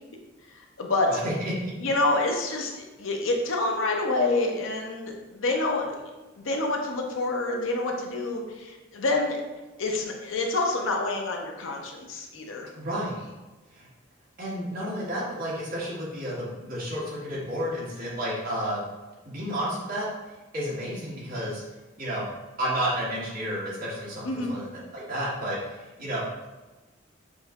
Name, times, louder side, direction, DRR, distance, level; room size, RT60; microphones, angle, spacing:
voice 1, 1.0-1.7 12.7-13.3 13.7-13.9 14.4-18.8 19.3-20.1 20.5-21.6 22.0-22.3 22.6-26.4, equal, 45° right, -7 dB, 1.5 m, -31 dB
voice 2, 1.8-5.9 6.4-9.4 9.8-12.7 24.2-24.5, left 2 dB, 85° left, 1 dB, 0.7 m, -27 dB
6.4 x 2.7 x 2.3 m, 1.1 s
head